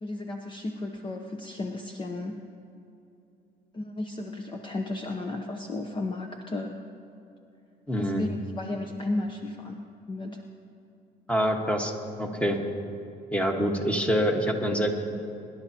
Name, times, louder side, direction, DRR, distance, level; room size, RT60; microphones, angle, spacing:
voice 1, 0.0-2.4 3.7-6.7 8.0-9.8 10.1-10.4, left 2 dB, 30° left, 3 dB, 0.8 m, -34 dB
voice 2, 7.9-8.3 11.3-11.9 12.2-12.6 13.3-14.9, equal, 5° left, 2 dB, 1.5 m, -25 dB
24.5 x 11.5 x 2.9 m, 2.8 s
cardioid pair, 110°, 17 cm